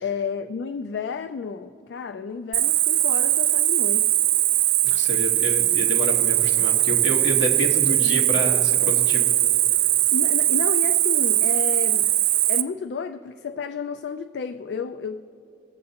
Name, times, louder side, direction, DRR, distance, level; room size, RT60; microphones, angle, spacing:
voice 1, 0.0-4.2 10.1-12.1 12.5-15.3, left 6 dB, 70° left, 9 dB, 0.3 m, -31 dB
Cricket, 2.5-12.6, right 14 dB, 50° right, 0.3 m, -20 dB
voice 2, 4.8-9.3, left 2 dB, 85° left, 1 dB, 1.3 m, -29 dB
21.5 x 7.6 x 2.8 m, 2.7 s
head